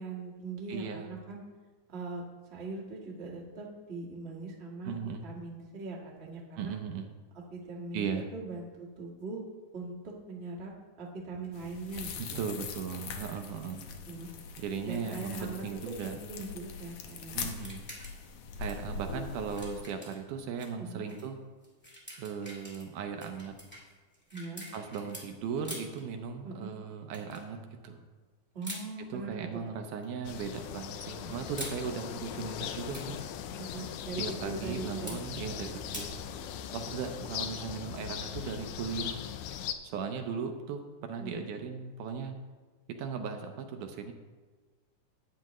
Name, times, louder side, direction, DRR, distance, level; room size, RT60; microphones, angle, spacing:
voice 1, 0.0-1.4 1.9-4.9 5.2-6.7 7.3-9.4 9.7-10.7 11.0-12.4 14.1-14.3 14.8-17.5 20.8-21.1 24.3-24.6 26.4-26.8 28.5-29.6 33.6-35.2 41.2-41.5, right 3 dB, 40° right, -3 dB, 0.9 m, -41 dB
voice 2, 0.7-1.1 4.9-5.3 6.6-7.1 7.9-8.3 12.4-13.8 14.6-16.2 17.3-17.9 18.6-21.4 22.2-23.6 24.7-27.6 27.8-28.0 29.1-33.2 34.2-36.2 36.7-39.2 39.8-42.4 43.0-44.1, right 6 dB, 75° right, 5 dB, 2.1 m, -37 dB
sound 1, 11.5-19.8, left 6 dB, 70° left, 1.7 m, -42 dB
sound 2, 17.5-18.3 18.5-20.7 21.1-21.2 21.6-25.3 25.6-26.0 27.1-27.4 28.6-28.8 30.0-30.4 31.3-31.8 32.7-33.2 35.1-35.2 35.9-36.1, equal, 5° left, 1.0 m, -45 dB
sound 3, 30.3-39.7, left 9 dB, 90° left, 2.3 m, -39 dB
11.5 x 8.8 x 3.1 m, 1.3 s
omnidirectional pair, 3.9 m